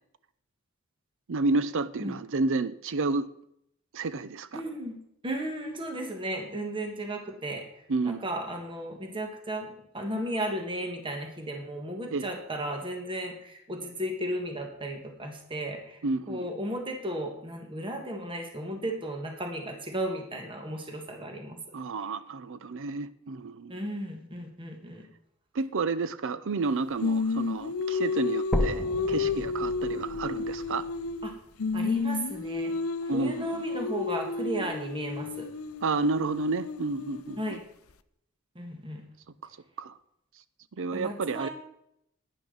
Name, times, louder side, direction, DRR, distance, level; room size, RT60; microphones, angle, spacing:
voice 1, 1.3-3.3 3.9-4.6 7.9-8.2 12.1-12.3 16.0-16.5 21.7-23.8 25.5-30.9 33.1-33.6 35.8-37.6 39.4-39.5 39.8-39.9 40.8-41.5, right 3 dB, 65° right, 15 dB, 0.6 m, -30 dB
voice 2, 4.5-5.0 5.2-7.6 8.1-16.0 16.3-21.6 23.7-25.1 31.2-31.3 31.7-32.8 33.1-35.5 37.4-37.6 38.6-39.0 40.9-41.5, right 1 dB, 25° right, 3 dB, 1.6 m, -34 dB
Singing, 27.0-31.3 31.6-37.6, left 4 dB, 75° left, 0.6 m, -31 dB
sound 1, 28.5-32.5 33.1-33.2 33.7-33.8 34.2-34.3 35.1-35.2, equal, ahead, 1.2 m, -35 dB
12.0 x 10.0 x 3.9 m, 0.75 s
head